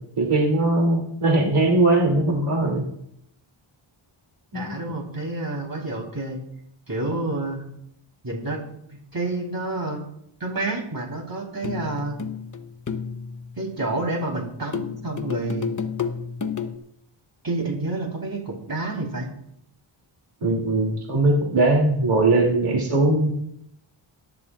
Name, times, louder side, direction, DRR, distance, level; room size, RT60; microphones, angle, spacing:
voice 1, 0.2-2.8 4.5-4.9 20.4-23.3, right 2 dB, 80° right, -1 dB, 2.8 m, -20 dB
voice 2, 4.5-6.4 6.9-7.7 8.2-8.6 8.9-10.1 10.4-12.2 13.6-15.7 17.4-19.3, right 2 dB, 45° right, 0 dB, 3.7 m, -29 dB
sound 1, 11.6-14.0 14.7-16.8, left 6 dB, 35° left, 0.9 m, -31 dB
21.5 x 12.0 x 2.4 m, 0.73 s
wide cardioid pair, 125°, 50 cm